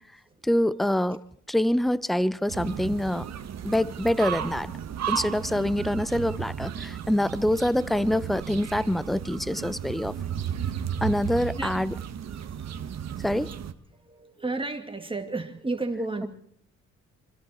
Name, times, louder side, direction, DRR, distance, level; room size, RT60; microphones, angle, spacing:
voice 1, 0.4-1.2 1.5-3.3 3.6-4.7 5.1-10.1 11.0-11.9 13.2-13.5, left 1 dB, ahead, 17 dB, 0.8 m, -25 dB
sound 1, 2.5-13.7, right 9 dB, 60° right, 1.6 m, -34 dB
voice 2, 12.3-13.0 13.4-13.6 14.0-16.3, right 2 dB, 15° right, 5 dB, 2.5 m, -33 dB
27.0 x 25.5 x 4.5 m, 0.63 s
cardioid pair, 90°, 30 cm